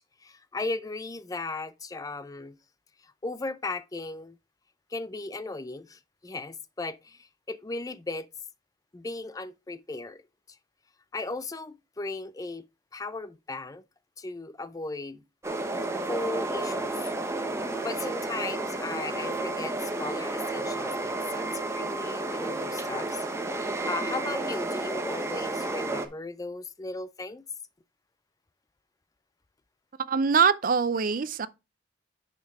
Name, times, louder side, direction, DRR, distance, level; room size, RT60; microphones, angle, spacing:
voice 1, 0.0-2.6 3.0-4.4 4.9-8.3 8.9-10.2 11.1-12.6 12.9-13.8 14.2-15.2 16.1-17.1 17.8-27.4, left 3 dB, 20° left, 0.4 m, -36 dB
sound 1, 15.4-26.1, right 2 dB, 15° right, 0.9 m, -31 dB
voice 2, 30.1-31.5, right 6 dB, 50° right, 0.5 m, -23 dB
10.5 x 4.6 x 3.5 m
head